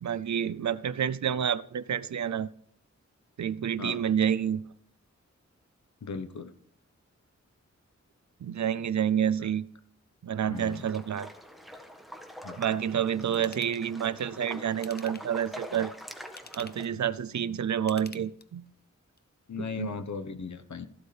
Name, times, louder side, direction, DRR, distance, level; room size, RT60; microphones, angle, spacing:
voice 1, 0.0-2.5 3.4-4.7 8.4-9.7 10.2-11.3 12.6-15.9 16.5-18.6 19.6-19.9, right 9 dB, 75° right, 0.6 m, -29 dB
voice 2, 6.0-6.5 10.5-10.9 12.4-12.6 19.5-20.9, left 5 dB, 75° left, 1.1 m, -37 dB
sound 1, 10.5-16.9, equal, ahead, 1.6 m, -45 dB
Ratchet pawl / Tools, 13.3-13.8 14.7-15.4 16.2-16.9 17.8-18.7 19.2-19.3, left 4 dB, 35° left, 0.8 m, -48 dB
15.0 x 12.0 x 3.4 m
wide cardioid pair, 85°, 29 cm